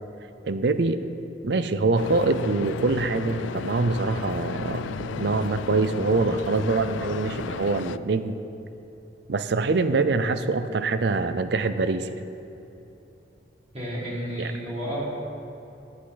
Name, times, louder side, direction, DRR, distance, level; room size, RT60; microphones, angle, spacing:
voice 1, 0.4-1.0 1.4-8.4 9.3-12.2 14.4-14.5, right 3 dB, 65° right, 11 dB, 0.5 m, -24 dB
sound 1, 2.0-8.0, left 6 dB, 85° left, 0.3 m, -34 dB
voice 2, 13.7-15.0, equal, 35° right, -8 dB, 1.9 m, -31 dB
14.5 x 8.5 x 4.0 m, 2.9 s
head